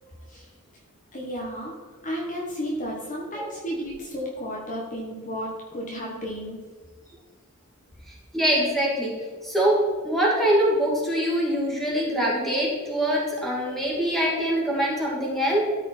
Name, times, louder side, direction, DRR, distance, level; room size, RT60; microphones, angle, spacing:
voice 1, 0.0-0.4 1.1-6.6, equal, 35° left, -2 dB, 1.4 m, -33 dB
voice 2, 8.3-9.1 9.4-9.8 10.0-15.6, equal, ahead, -5 dB, 2.6 m, -23 dB
13.0 x 5.3 x 4.3 m, 1.4 s
head